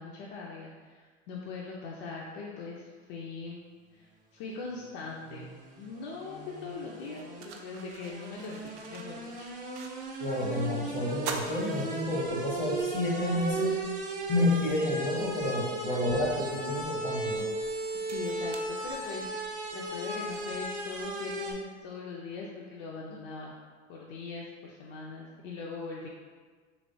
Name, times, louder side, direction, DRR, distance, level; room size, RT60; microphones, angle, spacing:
voice 1, 0.0-3.6 3.9-5.5 5.8-9.5 17.9-19.4 19.7-23.5 23.9-26.1, left 4 dB, 60° left, -3 dB, 0.5 m, -41 dB
sound 1, 4.8-21.5, right 2 dB, 20° right, 0.5 m, -37 dB
sound 2, 6.3-6.4 7.0-10.3 10.6-10.7 11.1-12.6 13.1-13.2 14.6-14.7 15.3-19.5, right 5 dB, 75° right, 0.5 m, -44 dB
voice 2, 10.2-13.8 14.3-17.5, left 1 dB, 75° left, -2 dB, 1.1 m, -29 dB
3.2 x 2.9 x 2.6 m, 1.5 s
hypercardioid pair, 100°, 35 cm